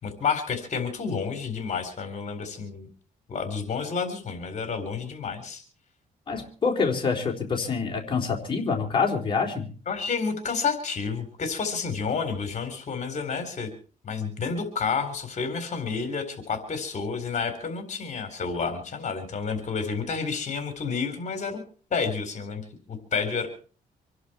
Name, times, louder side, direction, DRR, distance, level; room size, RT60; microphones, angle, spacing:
voice 1, 0.0-2.9 3.3-5.6 9.9-13.7 14.0-21.6 21.9-22.6 22.9-23.5, left 5 dB, 50° left, 7 dB, 4.0 m, -30 dB
voice 2, 6.3-9.7, left 5 dB, 35° left, 0 dB, 3.9 m, -26 dB
26.0 x 11.0 x 4.5 m, 0.40 s
cardioid pair, 110°, 16 cm